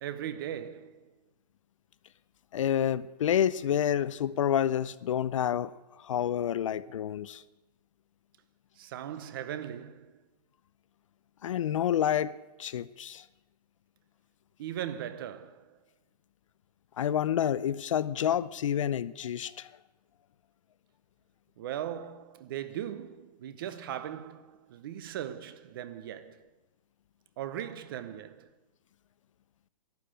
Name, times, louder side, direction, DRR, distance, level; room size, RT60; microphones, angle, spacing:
voice 1, 0.0-1.1 8.8-10.2 14.6-15.7 21.6-26.5 27.4-28.5, right 10 dB, 35° right, 0.8 m, -39 dB
voice 2, 2.5-5.7 6.0-7.4 11.4-12.3 12.6-13.2 17.0-19.7, left 10 dB, 50° left, 0.6 m, -28 dB
12.0 x 11.5 x 8.9 m
hypercardioid pair, 165°, 21 cm